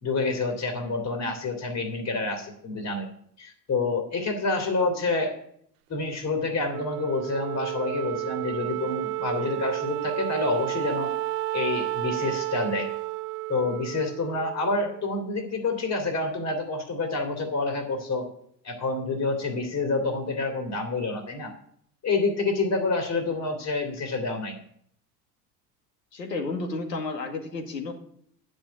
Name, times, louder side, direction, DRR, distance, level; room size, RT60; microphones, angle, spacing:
voice 1, 0.0-3.1 3.4-5.3 5.9-11.1 11.5-12.9 13.5-18.3 18.6-21.5 22.0-24.6, left 3 dB, 35° left, 4 dB, 2.7 m, -28 dB
Wind instrument woodwind instrument, 6.7-15.3, right 17 dB, 70° right, 0.6 m, -32 dB
voice 2, 26.1-27.9, left 3 dB, 90° left, 4 dB, 2.2 m, -32 dB
9.9 x 6.3 x 8.3 m, 0.67 s
hypercardioid pair, 75°, 48 cm